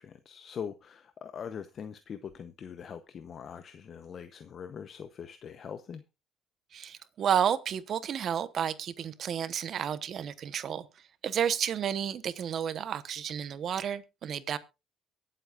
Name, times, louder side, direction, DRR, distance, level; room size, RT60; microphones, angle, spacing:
voice 1, 0.0-6.0, left 7 dB, 50° left, 0.8 m, -42 dB
voice 2, 6.7-10.9 11.2-14.6, right 8 dB, 55° right, 1.0 m, -31 dB
23.0 x 7.7 x 2.5 m
supercardioid pair, 85°, 0 cm